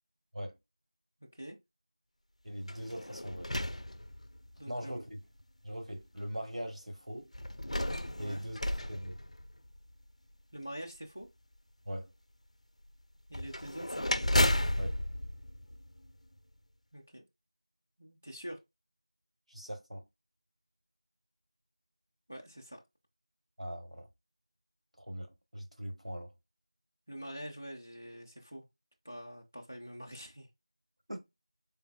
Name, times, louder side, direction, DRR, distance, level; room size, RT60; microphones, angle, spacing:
voice 1, 1.2-1.6 4.6-5.0 8.2-8.4 10.5-11.3 13.3-14.2 16.9-17.2 18.0-18.6 22.3-22.8 27.1-28.7 29.0-30.5, equal, 20° left, 0.3 m, -45 dB
voice 2, 2.4-3.5 4.7-5.2 5.6-7.3 8.2-8.6 8.9-9.2 11.8-12.1 14.7-15.0 19.5-20.1 23.6-24.1 25.0-26.3 31.1-31.2, equal, 80° right, 1.3 m, -41 dB
sound 1, 2.6-4.6 5.4-5.5 7.3-9.9 13.3-16.4, left 1 dB, 85° left, 0.4 m, -33 dB
3.8 x 3.3 x 2.2 m
figure-of-eight pair, 180°, 3 cm